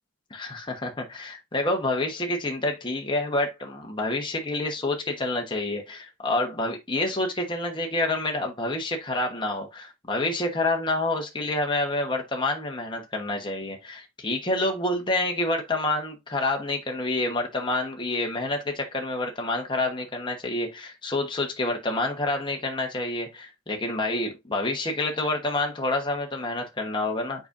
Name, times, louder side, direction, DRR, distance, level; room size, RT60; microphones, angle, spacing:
voice 1, 0.3-27.5, left 2 dB, 20° left, 1.1 m, -28 dB
7.9 x 5.0 x 2.6 m
head